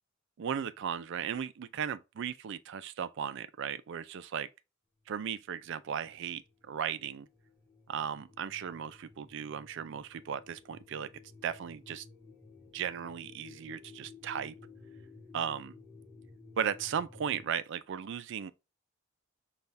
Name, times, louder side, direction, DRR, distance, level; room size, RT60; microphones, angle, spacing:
voice 1, 0.4-4.5 5.1-7.3 7.9-11.1 11.4-12.1 12.7-14.6 15.3-15.7 16.6-18.5, right 8 dB, 60° right, 0.4 m, -36 dB
sound 1, 5.6-17.5, left 4 dB, 15° left, 2.3 m, -55 dB
5.4 x 2.4 x 3.2 m
head